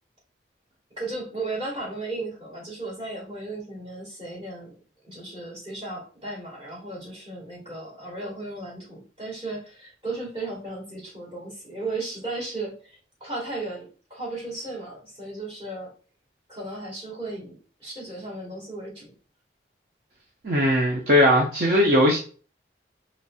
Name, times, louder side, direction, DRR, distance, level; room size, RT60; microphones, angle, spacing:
voice 1, 1.0-4.7 5.0-15.9 16.5-19.1, right 2 dB, 30° right, 1.7 m, -35 dB
voice 2, 20.4-22.2, left 1 dB, 50° right, 0.6 m, -19 dB
4.0 x 3.1 x 2.3 m
head